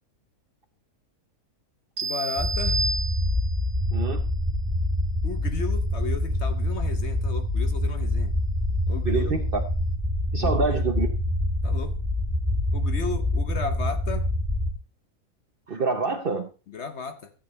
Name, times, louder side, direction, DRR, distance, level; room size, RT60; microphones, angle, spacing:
voice 1, 2.0-2.8 5.2-8.4 8.9-9.4 10.4-10.8 11.6-12.0 12.7-14.3 16.7-17.3, left 5 dB, 55° left, 8 dB, 1.0 m, -34 dB
sound 1, 2.0-3.7, right 3 dB, 80° right, 1.7 m, -30 dB
sound 2, 2.4-14.7, left 1 dB, ahead, 1.9 m, -26 dB
voice 2, 3.9-4.2 9.0-9.6 10.3-11.1 15.7-16.5, right 4 dB, 45° right, 7 dB, 0.8 m, -26 dB
13.5 x 8.2 x 3.1 m, 0.33 s
omnidirectional pair, 1.6 m